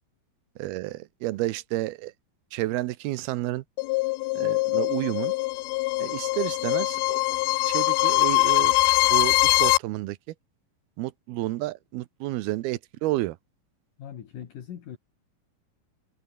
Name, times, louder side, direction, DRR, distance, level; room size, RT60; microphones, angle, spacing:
voice 1, 0.6-2.1 2.5-3.6 4.4-5.3 6.0-7.4 7.6-8.8 9.1-10.2 11.0-13.4, right 17 dB, 80° right, 2.7 m, -30 dB
sound 1, 3.8-9.8, left 22 dB, 80° left, 2.4 m, -23 dB
voice 2, 14.0-15.0, left 9 dB, 60° left, 3.5 m, -40 dB
omnidirectional pair, 4.5 m